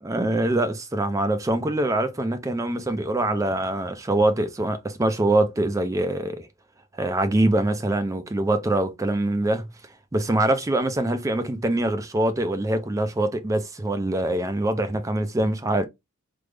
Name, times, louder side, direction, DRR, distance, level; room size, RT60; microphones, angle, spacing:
voice 1, 0.0-6.5 7.0-9.7 10.1-15.9, right 1 dB, 15° right, 0.4 m, -24 dB
3.4 x 2.0 x 3.2 m
head